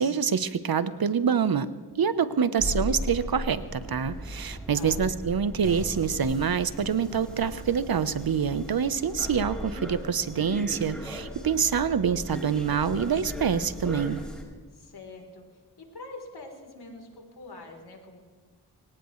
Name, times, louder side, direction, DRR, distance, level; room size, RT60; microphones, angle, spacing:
voice 1, 0.0-1.7 2.0-14.2, right 7 dB, 65° right, 13 dB, 1.0 m, -26 dB
voice 2, 2.4-2.9 4.7-5.0 14.7-15.4 15.8-18.2, left 2 dB, 80° left, 2 dB, 3.6 m, -45 dB
sound 1, 2.6-14.4, equal, ahead, 4.9 m, -37 dB
23.5 x 18.0 x 3.2 m, 1.4 s
cardioid pair, 50°, 39 cm